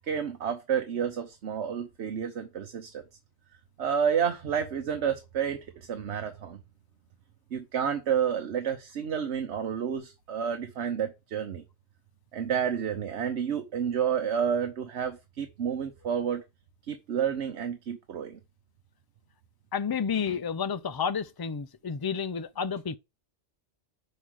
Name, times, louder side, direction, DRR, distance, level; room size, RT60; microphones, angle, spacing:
voice 1, 0.1-3.0 3.8-6.6 7.5-11.6 12.3-16.4 16.9-18.4, right 8 dB, 75° right, 1.2 m, -30 dB
voice 2, 19.7-23.0, left 6 dB, 40° left, 0.3 m, -30 dB
5.5 x 5.1 x 6.2 m
omnidirectional pair, 1.2 m